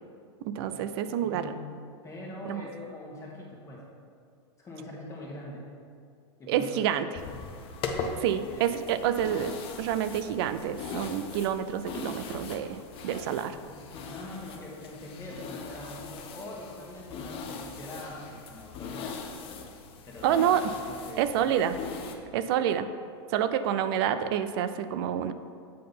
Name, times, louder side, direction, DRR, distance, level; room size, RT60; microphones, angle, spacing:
voice 1, 0.4-1.5 2.5-2.6 6.5-7.1 8.2-12.8 13.0-13.6 20.2-20.6 21.2-21.8 22.3-22.9 23.3-25.3, right 9 dB, 60° right, 12 dB, 0.4 m, -28 dB
voice 2, 1.2-1.8 2.0-3.8 4.6-5.7 6.4-7.1 8.4-8.7 13.5-19.2 20.0-21.2 21.9-22.5, left 1 dB, 20° left, -3 dB, 1.4 m, -43 dB
sound 1, 7.1-22.2, left 4 dB, 40° left, 0.8 m, -40 dB
7.6 x 3.8 x 5.5 m, 2.3 s
hypercardioid pair, 120°, 15 cm